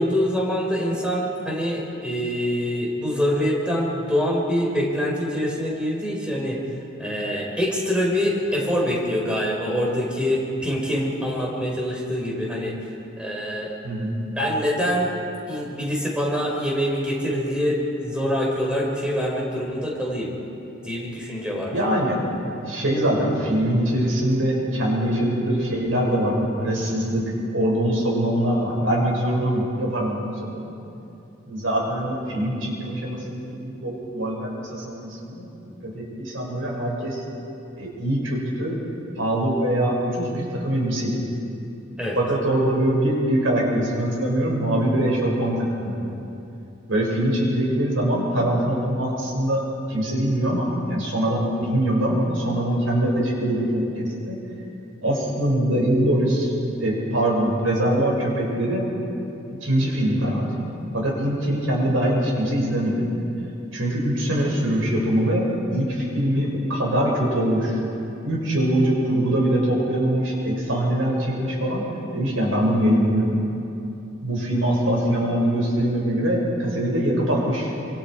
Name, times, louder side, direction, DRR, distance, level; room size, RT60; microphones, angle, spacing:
voice 1, 0.0-6.6 7.0-12.7 13.2-13.7 14.4-15.1 15.5-20.3 20.8-21.7 42.0-42.2, equal, 5° right, -3 dB, 4.5 m, -25 dB
voice 2, 21.6-22.2 22.6-27.2 27.5-30.7 31.5-37.2 37.8-38.8 39.2-41.3 42.1-46.0 46.9-49.6 49.9-54.4 55.0-58.9 59.6-60.7 60.9-63.1 63.7-67.8 68.2-71.8 72.1-73.4 74.2-77.7, right 1 dB, 80° right, -3 dB, 6.3 m, -23 dB
27.5 x 25.5 x 4.9 m, 2.8 s
head